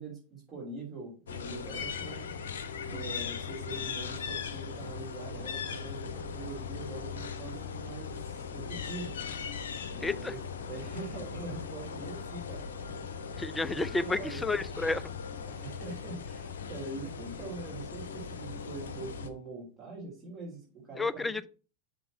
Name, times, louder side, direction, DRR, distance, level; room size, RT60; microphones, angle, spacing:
voice 1, 0.0-2.3 2.8-9.2 9.9-10.4 10.7-12.6 13.6-14.4 15.5-21.3, right 3 dB, 25° right, 3.5 m, -43 dB
sound 1, 1.3-19.3, left 6 dB, 60° left, 0.9 m, -39 dB
voice 2, 10.0-10.4 13.4-15.1 21.0-21.5, left 3 dB, 10° left, 0.5 m, -31 dB
6.8 x 5.3 x 5.7 m
figure-of-eight pair, 90°, 0 cm